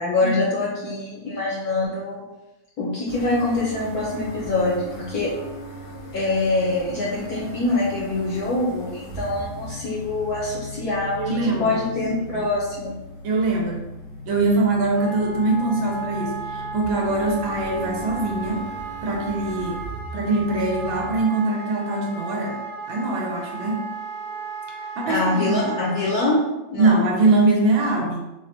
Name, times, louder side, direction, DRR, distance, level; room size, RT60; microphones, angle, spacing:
voice 1, 0.0-2.2 2.8-5.3 6.1-12.9 25.1-26.4 26.7-27.0, left 2 dB, 65° left, -6 dB, 1.0 m, -24 dB
sound 1, 3.1-21.1, left 1 dB, 85° left, 1.8 m, -38 dB
voice 2, 11.2-11.8 13.2-13.9 14.3-18.7 19.0-19.9 20.1-22.6 22.9-23.8 25.0-25.6 26.8-28.2, right 2 dB, 80° right, -1 dB, 1.4 m, -22 dB
Wind instrument woodwind instrument, 14.9-26.2, right 4 dB, 55° right, 1.3 m, -35 dB
4.2 x 2.2 x 2.6 m, 0.98 s
omnidirectional pair, 2.2 m